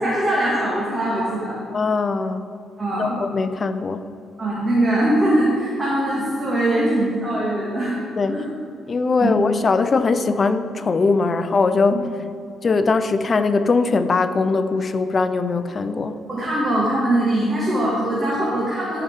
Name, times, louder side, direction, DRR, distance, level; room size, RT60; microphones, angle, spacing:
voice 1, 0.0-1.6 2.8-3.2 4.4-7.9 8.3-8.5 9.2-9.3 16.3-19.0, right 1 dB, 30° right, -8 dB, 2.1 m, -21 dB
voice 2, 1.7-2.4 3.0-4.0 8.2-8.4 8.9-12.1 12.6-16.2, left 4 dB, 40° left, 10 dB, 0.5 m, -20 dB
13.0 x 5.6 x 3.6 m, 2.3 s
cardioid pair, 90°, 0 cm